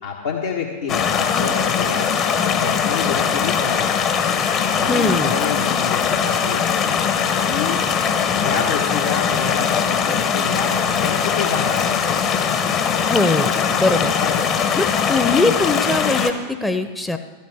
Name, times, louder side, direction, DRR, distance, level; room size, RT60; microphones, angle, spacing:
voice 1, 0.0-2.1 2.4-3.9 4.2-4.3 4.7-7.0 7.5-7.8 8.3-12.1 14.2-14.5, left 6 dB, 65° left, -1 dB, 1.4 m, -28 dB
sound 1, 0.9-16.3, left 7 dB, 30° left, 1.1 m, -20 dB
voice 2, 4.9-5.4 13.0-13.5 13.8-14.1 14.7-17.2, left 2 dB, 5° left, 8 dB, 0.7 m, -21 dB
15.5 x 13.0 x 3.6 m, 1.3 s
figure-of-eight pair, 90°, 0 cm